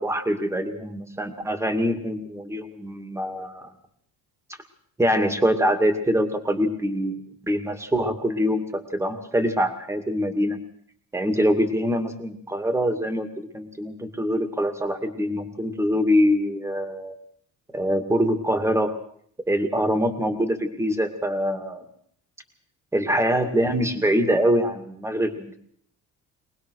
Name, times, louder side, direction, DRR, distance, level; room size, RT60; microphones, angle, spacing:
voice 1, 0.0-3.7 5.0-7.2 7.5-10.6 11.1-13.3 13.5-17.2 17.7-18.9 19.5-21.8 22.9-25.6, equal, 10° right, 8 dB, 2.3 m, -24 dB
23.5 x 19.5 x 6.5 m, 0.62 s
cardioid pair, 160°, 32 cm